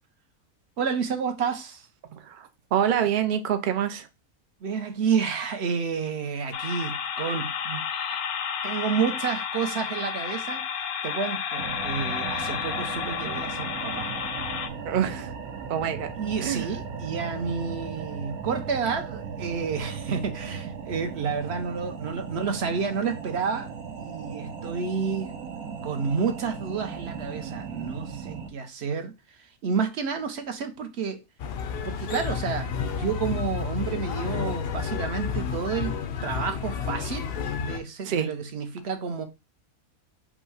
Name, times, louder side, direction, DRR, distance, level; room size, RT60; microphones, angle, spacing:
voice 1, 0.8-1.9 4.6-8.2 8.6-14.1 16.2-25.3 25.8-31.2 31.8-35.9 36.2-39.2, right 6 dB, 55° right, 0.9 m, -30 dB
voice 2, 2.1-4.1 14.8-15.3 15.7-16.1 16.4-16.7 38.1-38.3, right 9 dB, 70° right, 0.4 m, -26 dB
sound 1, 6.5-14.7, left 8 dB, 80° left, 1.1 m, -31 dB
sound 2, 11.6-28.5, right 6 dB, 85° right, 1.2 m, -37 dB
sound 3, 31.4-37.8, left 6 dB, 65° left, 0.6 m, -31 dB
5.3 x 2.2 x 4.7 m
omnidirectional pair, 1.5 m